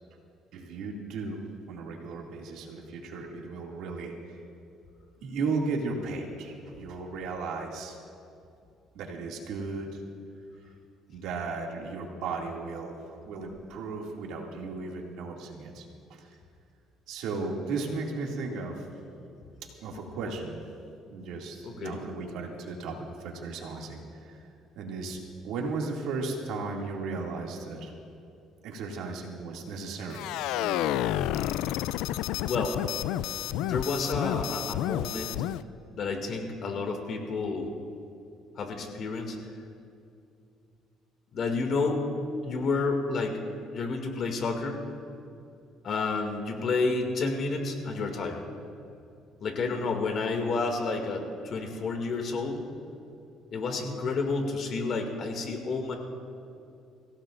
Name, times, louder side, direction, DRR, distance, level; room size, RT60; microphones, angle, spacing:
voice 1, 0.5-1.4 1.7-4.4 5.2-8.0 8.9-10.0 11.1-16.4 17.1-18.9 19.8-20.6 21.1-24.5 24.8-25.2 25.4-27.9 28.6-30.3 30.6-31.1, right 3 dB, 80° right, 0 dB, 2.4 m, -35 dB
voice 2, 21.6-22.0 32.4-32.8 33.6-35.3 35.9-37.7 38.6-39.4 41.3-42.1 42.4-43.4 43.7-44.8 45.8-48.4 49.4-52.6 53.5-56.0, left 3 dB, 55° left, 3 dB, 2.3 m, -30 dB
sound 1, 30.1-35.6, left 13 dB, 85° left, 0.4 m, -30 dB
25.5 x 16.0 x 2.6 m, 2.5 s
cardioid pair, 100°, 0 cm